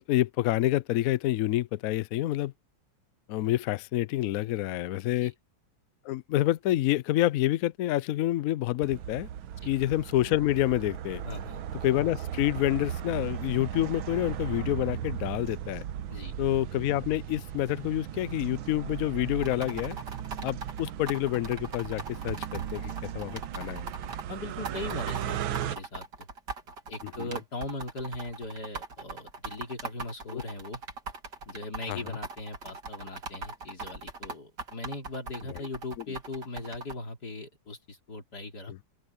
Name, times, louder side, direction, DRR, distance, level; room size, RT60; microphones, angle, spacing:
voice 1, 0.0-2.5 3.3-5.3 6.0-9.3 9.7-11.2 11.8-15.8 16.4-20.0 20.4-23.8 27.0-27.3 30.3-30.4 31.9-32.0 35.5-35.6 38.7-38.8, left 15 dB, 85° left, 0.7 m, -28 dB
sound 1, 8.8-25.8, right 10 dB, 90° right, 1.7 m, -37 dB
voice 2, 11.2-11.6 16.1-16.3 24.3-26.1 26.9-30.8 31.5-38.7, left 2 dB, 55° left, 3.7 m, -39 dB
sound 2, 19.4-24.2 24.6-36.9, right 4 dB, 60° right, 3.2 m, -40 dB
open air
omnidirectional pair, 2.1 m